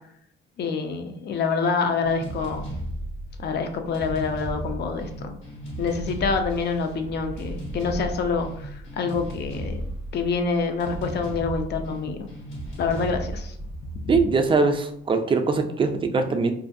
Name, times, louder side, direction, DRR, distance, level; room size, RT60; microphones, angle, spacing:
voice 1, 0.6-2.7 3.4-5.4 5.8-12.3 12.8-13.5 14.1-14.2, left 5 dB, 55° left, 5 dB, 0.4 m, -27 dB
sound 1, 2.0-14.7, right 1 dB, 80° left, 1.1 m, -35 dB
voice 2, 14.1-16.5, right 4 dB, 25° right, 6 dB, 0.3 m, -22 dB
2.5 x 2.2 x 2.5 m, 0.69 s
cardioid pair, 90°, 20 cm